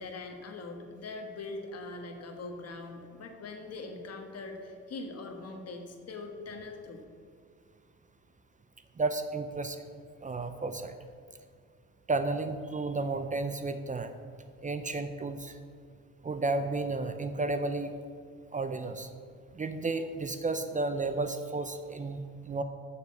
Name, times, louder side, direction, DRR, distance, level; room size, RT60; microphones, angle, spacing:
voice 1, 0.0-7.0, left 3 dB, 55° left, 4 dB, 1.4 m, -42 dB
voice 2, 9.0-9.8 10.2-10.9 12.1-14.1 14.6-15.6 16.2-17.9 18.5-19.1 19.5-22.6, right 3 dB, 25° right, 9 dB, 0.6 m, -32 dB
6.9 x 6.9 x 7.1 m, 2.2 s
cardioid pair, 90°, 30 cm